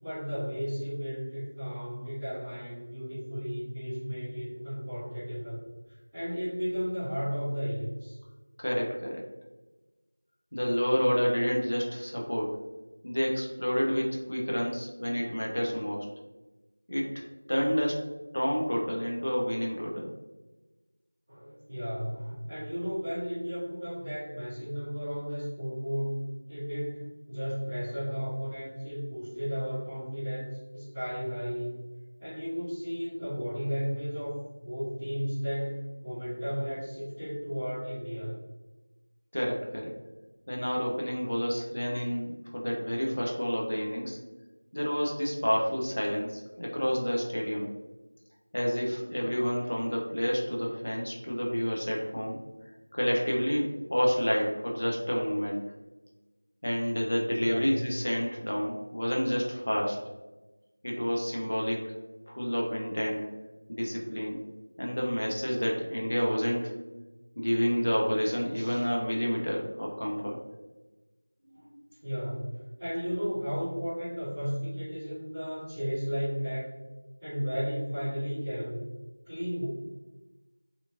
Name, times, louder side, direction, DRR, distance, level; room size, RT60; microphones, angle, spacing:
voice 1, 0.0-5.6 5.9-8.2 13.6-13.9 21.3-31.9 32.2-38.4 57.4-57.8 68.5-68.8 71.4-76.7 77.2-78.8 79.2-79.7, equal, 5° right, -20 dB, 1.0 m, -34 dB
voice 2, 8.6-9.2 10.5-12.6 13.0-16.1 16.9-17.1 17.5-18.0 18.3-20.1 39.3-39.9 40.5-44.2 44.7-47.7 48.5-52.4 52.9-55.6 56.6-60.0 60.8-61.9 62.3-63.3 63.7-64.4 64.8-66.7 67.4-70.4, equal, 55° left, -2 dB, 0.6 m, -29 dB
2.9 x 2.4 x 2.4 m, 1.2 s
figure-of-eight pair, 175°, 0 cm